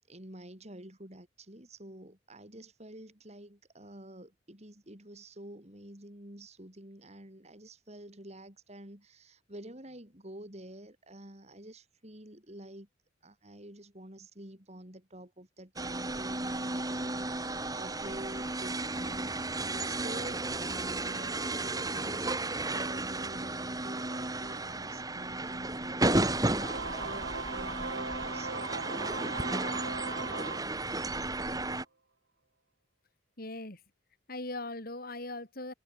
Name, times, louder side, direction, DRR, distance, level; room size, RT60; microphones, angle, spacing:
voice 1, 0.1-12.9 13.2-26.4 27.0-28.7, right 1 dB, 35° right, 4.9 m, -48 dB
sound 1, 15.8-31.8, right 2 dB, 20° right, 3.3 m, -33 dB
Singing / Musical instrument, 26.5-31.4, right 3 dB, 60° right, 3.6 m, -39 dB
voice 2, 33.4-33.8 34.3-35.7, left 2 dB, 50° left, 4.6 m, -39 dB
head